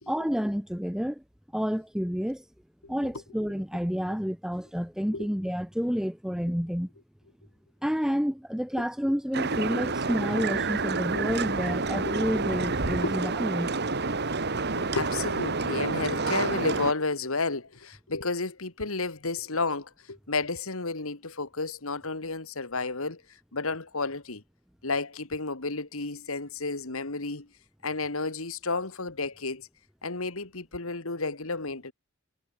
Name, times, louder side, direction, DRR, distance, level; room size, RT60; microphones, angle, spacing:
voice 1, 0.1-1.2 1.5-2.4 2.9-6.9 7.8-13.7, equal, 5° right, 1.1 m, -29 dB
sound 1, 9.3-16.9, right 3 dB, 50° right, 1.7 m, -29 dB
voice 2, 14.5-23.2 23.5-24.4 24.8-27.5 27.8-29.7 30.0-31.9, left 3 dB, 75° left, 2.3 m, -32 dB
head